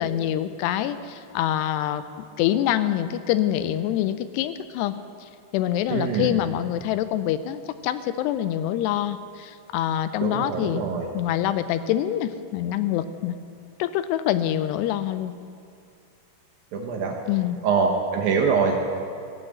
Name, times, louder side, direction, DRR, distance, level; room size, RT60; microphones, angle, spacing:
voice 1, 0.0-2.0 2.4-4.9 5.2-10.8 11.1-13.4 13.8-15.3 17.3-17.6, left 11 dB, 85° left, 12 dB, 2.6 m, -25 dB
voice 2, 5.9-6.3 10.2-11.1 16.7-17.2 17.6-18.8, right 5 dB, 70° right, 1 dB, 2.5 m, -24 dB
16.0 x 8.8 x 7.7 m, 2.3 s
omnidirectional pair, 4.8 m